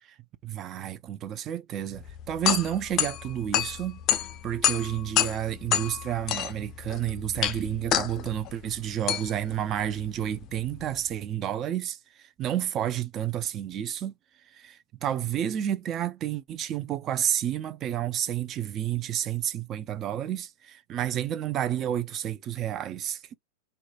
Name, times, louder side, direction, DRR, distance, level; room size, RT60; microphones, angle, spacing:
voice 1, 0.4-4.0 4.4-14.1 14.5-23.3, right 11 dB, 30° right, 0.4 m, -30 dB
sound 1, 2.0-11.1, left 10 dB, 35° left, 0.4 m, -29 dB
2.7 x 2.2 x 2.4 m
figure-of-eight pair, 95°, 0 cm